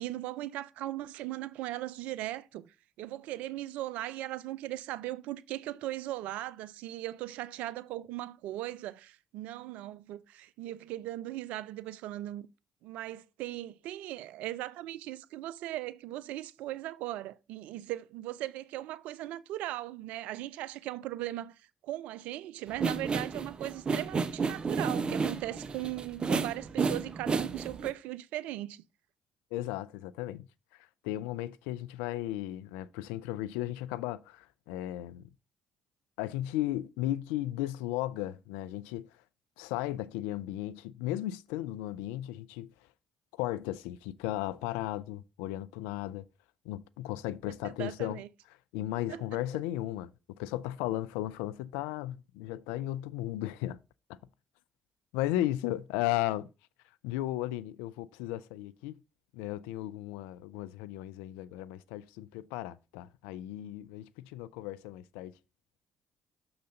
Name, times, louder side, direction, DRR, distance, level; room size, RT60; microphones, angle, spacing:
voice 1, 0.0-12.5 12.8-28.8 47.6-48.3 49.1-49.2, right 15 dB, 75° right, 0.4 m, -38 dB
sound 1, 22.7-27.9, right 5 dB, 40° right, 0.8 m, -31 dB
voice 2, 29.5-30.5 31.0-35.3 36.2-39.1 39.6-42.7 43.4-46.3 46.7-48.2 48.7-50.1 50.4-53.8 55.1-56.5 57.0-59.0 59.3-65.3, left 14 dB, 85° left, 0.3 m, -35 dB
6.6 x 3.9 x 5.2 m
hypercardioid pair, 55°, 2 cm